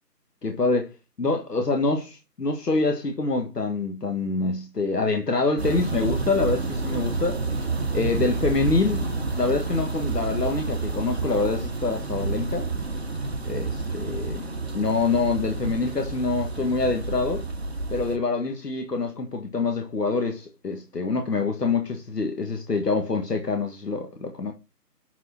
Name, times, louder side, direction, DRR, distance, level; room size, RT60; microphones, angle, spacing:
voice 1, 0.4-0.9 1.2-7.4 7.9-9.1 9.4-12.7 13.5-14.4 14.7-17.5 17.9-24.5, left 3 dB, 70° left, 1.7 m, -26 dB
sound 1, 5.6-18.2, right 3 dB, 40° right, 1.4 m, -29 dB
6.8 x 6.4 x 4.4 m
figure-of-eight pair, 170°, 49 cm